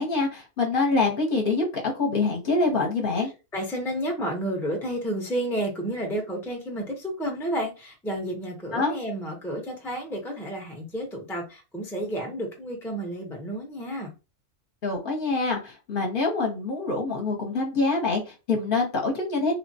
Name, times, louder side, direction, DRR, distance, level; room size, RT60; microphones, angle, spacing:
voice 1, 0.0-3.3 8.7-8.9 14.8-19.6, left 3 dB, 50° left, 0.8 m, -25 dB
voice 2, 3.2-14.1, right 1 dB, 5° left, 0.5 m, -31 dB
3.2 x 2.0 x 2.6 m
omnidirectional pair, 1.3 m